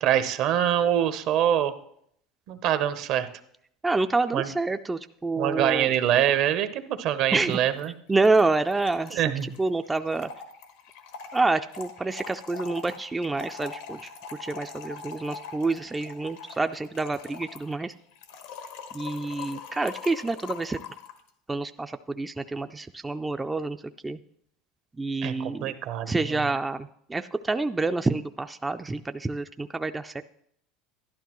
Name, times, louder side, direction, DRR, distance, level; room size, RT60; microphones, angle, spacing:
voice 1, 0.0-1.7 2.5-3.3 4.3-4.5 5.4-7.9 9.1-9.5 25.2-26.4, right 10 dB, 60° right, 11 dB, 0.8 m, -25 dB
voice 2, 3.8-5.9 7.3-7.6 8.1-9.2 9.6-10.3 11.3-14.0 14.4-17.9 18.9-20.8 21.5-23.8 24.0-24.2 25.0-25.8 26.0-30.2, right 3 dB, 15° right, 8 dB, 0.3 m, -27 dB
Trickle dribble / Fill (with liquid), 7.5-7.6 7.8-7.9 8.1-21.2, left 6 dB, 85° left, 1.2 m, -42 dB
11.5 x 11.5 x 3.0 m, 0.69 s
supercardioid pair, 110°, 0 cm